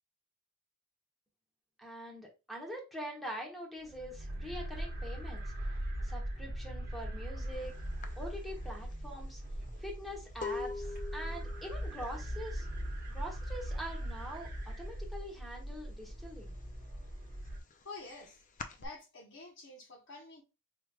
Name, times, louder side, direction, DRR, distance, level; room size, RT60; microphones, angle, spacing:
voice 1, 1.8-5.4 6.0-7.7 8.2-9.4 9.8-12.7 13.1-16.5, equal, ahead, 1.1 m, -44 dB
sound 1, 3.8-17.6, right 1 dB, 45° right, 1.1 m, -40 dB
sound 2, 7.5-7.7 8.0-13.7 14.0-14.5 14.8-15.9 16.3-18.9, left 4 dB, 35° left, 0.5 m, -44 dB
voice 2, 17.8-18.4 18.8-20.4, left 3 dB, 55° left, 0.9 m, -48 dB
4.8 x 3.2 x 2.3 m
head